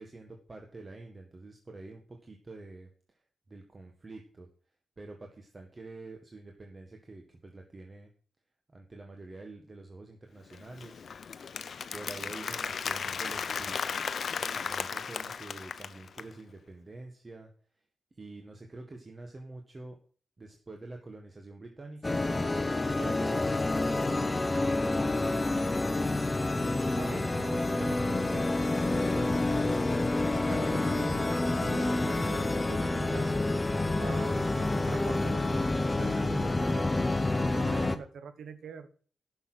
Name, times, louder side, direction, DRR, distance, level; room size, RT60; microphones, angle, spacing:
voice 1, 0.0-3.2 3.5-4.5 5.0-8.1 8.7-11.0 11.9-13.8 14.4-17.5 18.1-20.0 20.4-22.2 23.0-23.4 24.0-24.2 26.6-26.7 27.0-27.3 29.0-29.5, right 2 dB, 30° right, 3 dB, 1.7 m, -47 dB
Applause, 10.5-16.3, left 6 dB, 60° left, 0.6 m, -35 dB
sound 1, 22.0-38.0, left 2 dB, 20° left, 1.0 m, -28 dB
voice 2, 22.1-22.5 23.0-23.2 27.0-28.5 30.5-33.3 34.0-37.1 37.4-38.9, right 6 dB, 80° right, 11 dB, 1.2 m, -44 dB
10.5 x 6.9 x 6.3 m, 0.42 s
cardioid pair, 80°, 0 cm